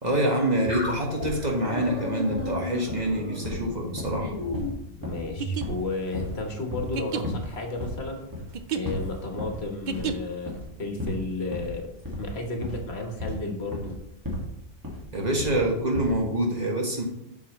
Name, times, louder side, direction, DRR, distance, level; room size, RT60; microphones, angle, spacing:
voice 1, 0.0-4.3 15.1-17.0, right 1 dB, 40° right, 0 dB, 1.4 m, -26 dB
sound 1, 0.7-5.6, left 2 dB, 35° left, 1.6 m, -35 dB
sound 2, 0.7-1.4 1.8-2.0 2.3-2.6 2.9-3.1 3.4-5.3 5.6-5.8 6.1-6.4 6.7-7.0 7.2-7.5 7.8-8.1 8.3-8.6 8.8-9.6 9.9-10.2 10.5-10.7 11.0-11.2 11.5-14.5 14.8-15.7 15.9-16.2, left 1 dB, 15° right, 1.9 m, -34 dB
voice 2, 5.0-8.3 8.7-11.9 12.2-14.0, left 2 dB, 65° left, 2 dB, 1.5 m, -33 dB
sound 3, 5.3-10.5, right 7 dB, 55° right, 0.6 m, -34 dB
8.2 x 6.4 x 3.1 m, 0.83 s
omnidirectional pair, 1.2 m